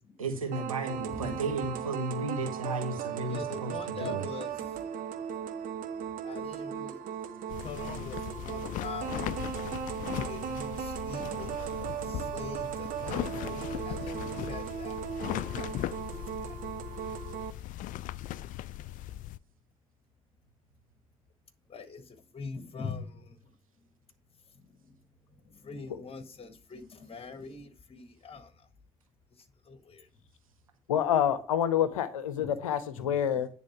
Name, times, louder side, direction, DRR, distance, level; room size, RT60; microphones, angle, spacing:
voice 1, 0.2-4.3, right 3 dB, 90° right, 1.1 m, -34 dB
sound 1, 0.5-17.5, right 8 dB, 55° right, 1.0 m, -37 dB
voice 2, 1.1-1.7 3.3-4.8 6.2-7.0 7.6-9.1 10.3-15.0 15.5-15.7 16.0-16.6 21.7-23.4 24.6-24.7 25.4-28.5 29.7-30.1 32.4-32.5 32.9-33.1 33.3-33.4, left 5 dB, 35° left, 1.5 m, -43 dB
sound 2, 7.5-19.4, left 13 dB, 50° left, 0.4 m, -38 dB
voice 3, 30.9-33.5, left 9 dB, 80° left, 0.7 m, -27 dB
9.6 x 3.7 x 5.8 m
figure-of-eight pair, 50°, 17 cm